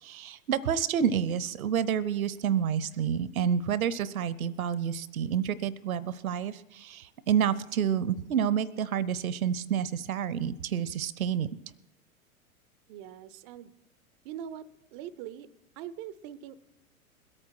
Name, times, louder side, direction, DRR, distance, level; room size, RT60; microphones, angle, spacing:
voice 1, 0.0-11.5, right 8 dB, 75° right, 19 dB, 0.7 m, -29 dB
voice 2, 12.9-13.7 14.2-14.7 14.9-15.5 15.8-16.5, right 10 dB, 25° right, 17 dB, 0.4 m, -42 dB
21.0 x 8.9 x 4.6 m, 0.90 s
figure-of-eight pair, 100°, 43 cm